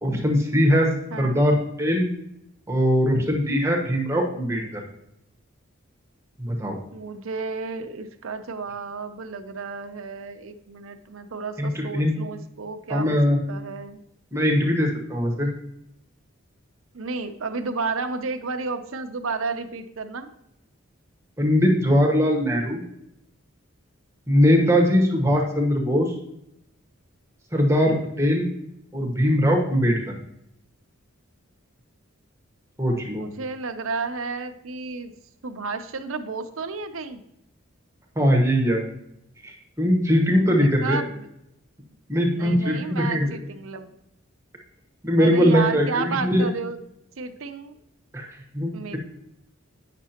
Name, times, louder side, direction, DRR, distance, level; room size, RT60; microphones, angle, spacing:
voice 1, 0.0-0.9 1.2-2.1 2.7-4.8 6.4-6.8 11.6-12.1 12.9-13.4 14.3-15.5 21.4-22.8 24.3-26.1 27.5-28.5 28.9-30.0 32.8-33.3 38.2-38.8 39.4-41.0 42.1-43.3 45.0-46.4 48.1-48.3 48.5-49.0, equal, 15° right, 0 dB, 1.0 m, -21 dB
voice 2, 1.1-1.4 6.9-13.2 13.5-14.0 16.9-20.3 33.1-35.1 35.4-37.2 40.5-41.3 42.3-43.9 45.2-46.8 47.2-47.8 48.7-49.0, right 4 dB, 75° right, 8 dB, 0.7 m, -32 dB
9.0 x 6.0 x 2.9 m, 0.81 s
head